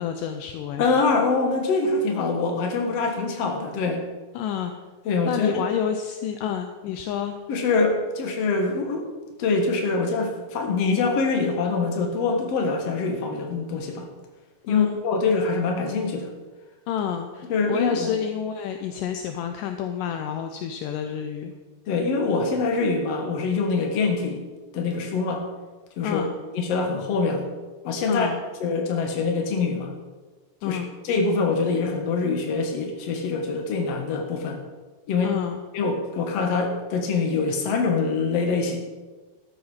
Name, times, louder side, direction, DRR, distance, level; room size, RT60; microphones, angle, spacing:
voice 1, 0.0-0.9 4.4-4.7 5.2-7.4 14.7-15.0 16.9-21.5 26.0-26.3 28.1-28.4 30.6-30.9 35.2-35.6, left 9 dB, 80° left, 6 dB, 2.0 m, -29 dB
voice 2, 0.8-4.0 5.1-5.6 7.5-9.1 9.4-14.1 14.7-16.3 17.5-18.1 21.9-24.4 24.7-25.4 26.0-26.2 26.5-27.5 27.8-28.3 28.6-29.9 30.6-30.8 31.0-34.6 35.1-35.3 35.7-38.8, left 4 dB, 50° left, 3 dB, 2.1 m, -24 dB
13.0 x 8.7 x 5.5 m, 1.3 s
omnidirectional pair, 4.5 m